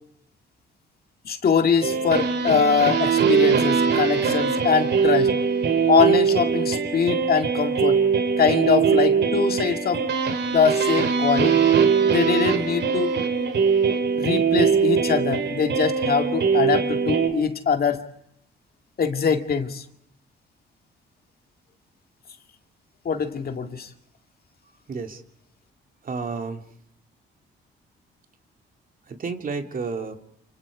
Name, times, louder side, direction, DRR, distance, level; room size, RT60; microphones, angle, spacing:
voice 1, 1.2-5.3 5.9-8.0 8.4-10.1 10.5-11.6 12.0-13.2 14.1-18.0 19.0-19.8 23.1-23.9, left 6 dB, 50° left, 5 dB, 2.2 m, -23 dB
sound 1, 1.8-17.3, right 6 dB, 60° right, 3.0 m, -21 dB
voice 2, 24.9-25.2 26.0-26.6 29.1-30.2, right 4 dB, 45° right, 4 dB, 2.7 m, -31 dB
28.5 x 28.5 x 5.0 m, 0.73 s
cardioid pair, 90°, 20 cm